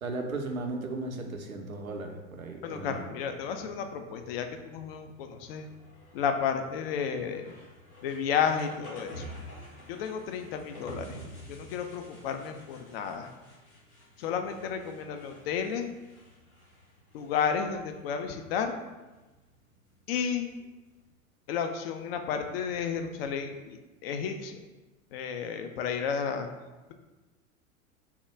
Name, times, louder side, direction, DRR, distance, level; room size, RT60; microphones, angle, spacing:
voice 1, 0.0-3.0, right 2 dB, 85° right, 3 dB, 0.6 m, -36 dB
voice 2, 2.6-5.7 6.1-7.5 8.0-9.4 9.9-11.2 11.5-13.3 14.2-15.9 17.1-18.8 20.1-20.5 21.5-24.6 25.1-26.5, left 7 dB, 50° left, 6 dB, 0.4 m, -32 dB
sound 1, 3.2-21.1, equal, 85° left, 1.1 m, -50 dB
3.5 x 2.2 x 4.4 m, 1.1 s
figure-of-eight pair, 90°, 41 cm